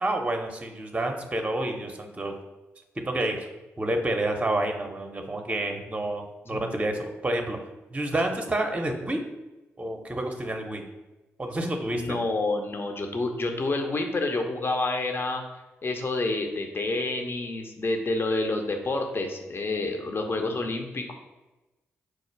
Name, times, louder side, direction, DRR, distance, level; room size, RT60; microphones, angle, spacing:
voice 1, 0.0-2.3 3.1-3.5 3.8-7.6 7.9-9.2 9.8-10.8 11.4-12.2, right 1 dB, 20° right, 4 dB, 0.7 m, -29 dB
voice 2, 11.9-15.4 15.8-21.1, left 2 dB, 40° left, 4 dB, 0.7 m, -28 dB
4.7 x 2.4 x 4.5 m, 1.1 s
hypercardioid pair, 40°, 6 cm